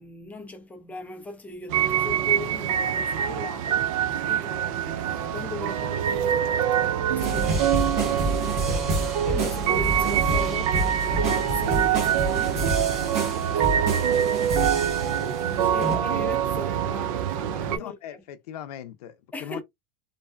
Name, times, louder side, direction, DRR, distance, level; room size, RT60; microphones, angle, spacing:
voice 1, 0.0-3.8 4.3-18.0 19.3-19.6, left 3 dB, 10° left, 0.4 m, -39 dB
sound 1, 1.7-17.8, right 9 dB, 60° right, 0.4 m, -25 dB
sound 2, 7.2-15.4 15.8-16.0, right 2 dB, 35° right, 1.0 m, -29 dB
voice 2, 17.7-19.6, left 11 dB, 90° left, 0.5 m, -39 dB
2.6 x 2.1 x 2.3 m
supercardioid pair, 150°, 19 cm